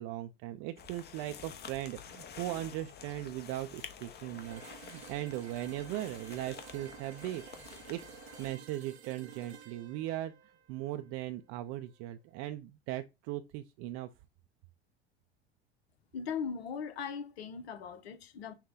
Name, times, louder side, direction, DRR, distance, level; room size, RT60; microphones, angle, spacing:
voice 1, 0.0-10.3 10.7-14.1, right 14 dB, 50° right, 0.5 m, -39 dB
sound 1, 0.8-8.5, left 8 dB, 30° left, 0.8 m, -50 dB
sound 2, 4.3-12.1, right 9 dB, 90° right, 0.7 m, -53 dB
voice 2, 16.1-18.5, left 6 dB, 75° left, 0.9 m, -39 dB
5.7 x 2.2 x 3.7 m
hypercardioid pair, 80°, 31 cm